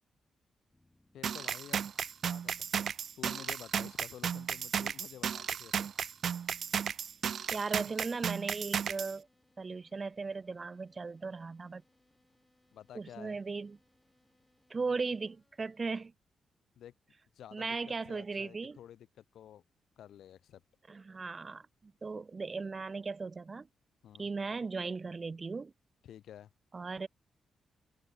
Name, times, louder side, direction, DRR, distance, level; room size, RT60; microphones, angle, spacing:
sound 1, 0.7-16.1, left 1 dB, 10° left, 4.8 m, -71 dB
voice 1, 1.1-2.0 2.2-5.9 12.7-13.4 16.8-16.9 17.3-19.6 20.0-20.6 24.0-24.3 26.0-26.5, left 10 dB, 85° left, 0.9 m, -51 dB
sound 2, 1.2-9.1, right 8 dB, 60° right, 0.4 m, -34 dB
voice 2, 7.5-9.3 9.6-11.8 12.9-13.8 14.7-16.1 17.5-18.8 20.9-23.7 24.2-25.7 26.7-27.1, right 4 dB, 30° right, 0.7 m, -37 dB
cardioid pair, 110°, 0 cm